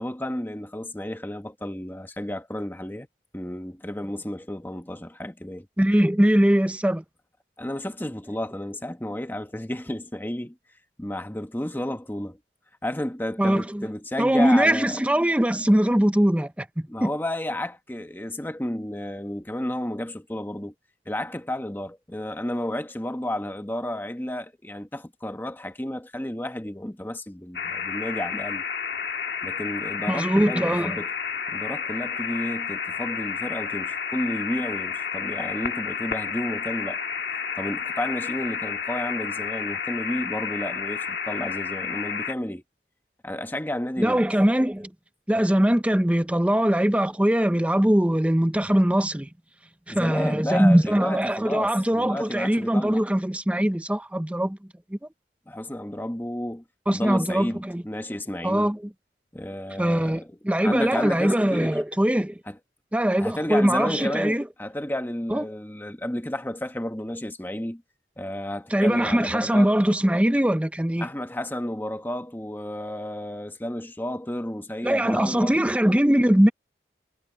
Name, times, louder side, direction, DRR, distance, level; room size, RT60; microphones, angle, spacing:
voice 1, 0.0-3.1 3.3-5.7 7.6-10.5 11.0-12.4 12.8-15.0 16.9-20.7 21.1-28.6 29.4-31.1 31.5-37.0 37.6-42.6 43.2-44.3 49.9-53.0 55.5-58.7 59.3-61.8 62.5-62.6 63.2-67.8 68.2-69.8 71.0-75.6, left 1 dB, 10° left, 1.1 m, -32 dB
voice 2, 5.8-7.0 13.4-13.9 14.2-17.1 30.1-31.0 44.0-44.9 45.3-49.3 49.9-54.6 54.9-55.0 56.9-57.8 58.4-58.8 59.8-62.3 62.9-64.4 65.3-65.4 68.7-71.1 74.8-76.5, equal, 5° right, 0.5 m, -21 dB
sound 1, 27.5-42.3, left 6 dB, 65° left, 1.7 m, -31 dB
head